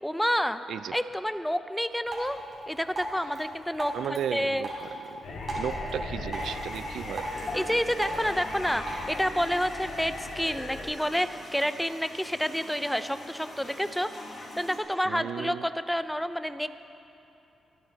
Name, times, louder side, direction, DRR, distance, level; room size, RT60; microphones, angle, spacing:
voice 1, 0.0-0.6 0.9-2.4 2.7-4.7 7.5-14.1 14.6-16.7, equal, ahead, 11 dB, 0.5 m, -29 dB
Drip, 2.0-9.0, right 1 dB, 45° right, 3.7 m, -38 dB
voice 2, 3.9-7.3 15.0-15.7, right 9 dB, 80° right, 15 dB, 0.3 m, -35 dB
sound 1, 5.2-10.8, left 2 dB, 85° left, 2.1 m, -38 dB
sound 2, 6.3-14.8, left 1 dB, 45° left, 2.8 m, -44 dB
24.0 x 8.7 x 4.0 m, 2.9 s
cardioid pair, 95°, 0 cm